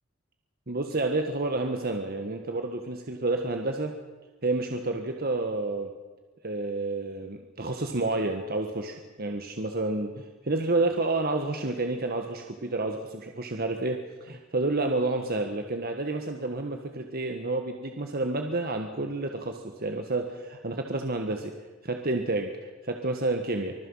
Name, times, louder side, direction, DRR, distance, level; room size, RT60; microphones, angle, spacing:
voice 1, 0.7-3.9 4.4-5.9 6.4-21.5 21.8-23.7, right 2 dB, 45° right, 4 dB, 1.5 m, -30 dB
25.0 x 21.5 x 5.6 m, 1.3 s
head